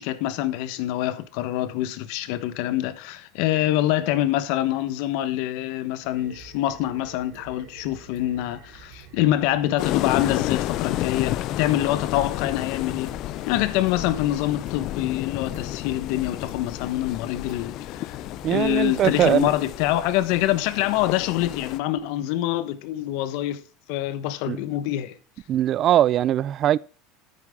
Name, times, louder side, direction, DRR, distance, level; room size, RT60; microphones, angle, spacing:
voice 1, 0.0-13.1 13.5-18.2 18.5-23.6 23.9-25.2, left 14 dB, 65° left, 1.1 m, -25 dB
sound 1, 6.0-19.4, right 5 dB, 70° right, 3.6 m, -49 dB
sound 2, 9.8-21.8, left 15 dB, 50° left, 0.4 m, -31 dB
voice 2, 18.4-19.5 24.5-24.6 25.5-26.8, right 11 dB, 40° right, 0.4 m, -21 dB
9.6 x 9.1 x 3.6 m
supercardioid pair, 140°, 0 cm